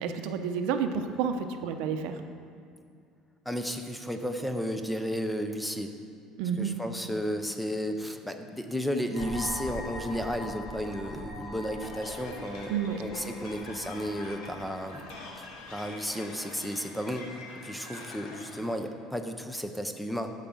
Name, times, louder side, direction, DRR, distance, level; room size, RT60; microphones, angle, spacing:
voice 1, 0.0-2.2 6.4-6.7 12.7-13.0, right 7 dB, 70° right, 7 dB, 0.7 m, -30 dB
voice 2, 3.5-5.9 6.6-12.7 13.0-15.1 15.4-20.3, equal, 5° left, 6 dB, 0.4 m, -33 dB
sound 1, 9.1-15.9, left 1 dB, 30° left, 1.4 m, -42 dB
sound 2, 11.8-18.6, left 3 dB, 80° left, 1.3 m, -45 dB
10.5 x 4.9 x 7.3 m, 2.3 s
cardioid pair, 165°, 0 cm